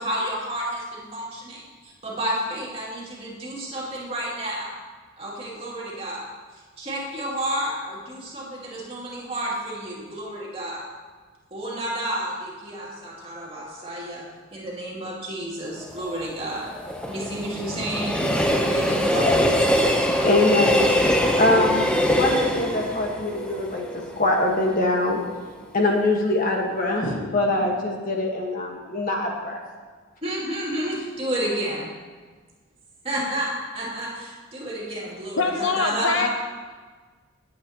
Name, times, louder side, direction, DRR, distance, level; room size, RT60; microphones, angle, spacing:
voice 1, 0.0-4.7 5.2-6.3 6.5-10.9 11.5-14.3 14.5-16.7 17.1-18.2 18.5-19.4 30.2-31.9 33.0-36.3, right 1 dB, 30° right, -5 dB, 2.6 m, -31 dB
Train, 15.8-24.9 25.3-25.4, equal, 5° left, 0.7 m, -23 dB
voice 2, 19.1-19.5 20.2-20.9 21.4-25.2 25.7-29.6, left 2 dB, 40° left, 0 dB, 1.4 m, -23 dB
voice 3, 35.4-36.3, left 4 dB, 65° left, 5 dB, 0.8 m, -23 dB
18.0 x 8.0 x 2.9 m, 1.4 s
head